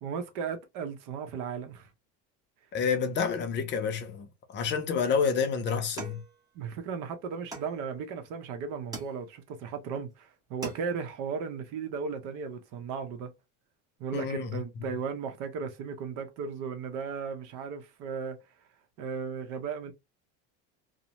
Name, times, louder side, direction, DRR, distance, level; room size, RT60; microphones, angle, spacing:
voice 1, 0.0-1.9 6.5-13.3 14.0-18.4 19.0-19.9, right 6 dB, 65° right, 0.8 m, -36 dB
voice 2, 2.7-6.2 14.1-14.6, left 6 dB, 35° left, 0.5 m, -29 dB
sound 1, 6.0-6.9 7.5-8.2 8.9-9.6 10.1-10.2 10.4-11.2, right 3 dB, 10° right, 0.7 m, -43 dB
2.6 x 2.1 x 2.9 m
cardioid pair, 145°, 34 cm